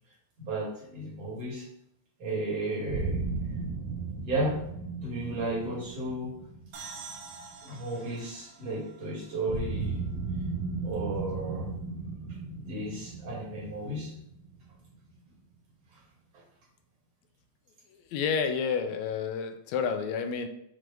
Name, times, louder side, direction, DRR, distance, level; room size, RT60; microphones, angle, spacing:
voice 1, 0.4-1.6 2.2-3.2 4.2-4.6 5.0-6.3 7.6-10.0 10.8-11.7 12.5-14.1 15.9-16.0, right 1 dB, 55° right, -6 dB, 3.3 m, -33 dB
sound 1, 2.9-7.8 9.5-15.1, right 4 dB, 70° right, 1.9 m, -36 dB
sound 2, 6.7-10.3, right 5 dB, 90° right, 2.5 m, -47 dB
voice 2, 17.9-20.5, left 6 dB, 80° left, 7 dB, 1.7 m, -30 dB
7.6 x 3.8 x 3.4 m, 0.76 s
omnidirectional pair, 3.5 m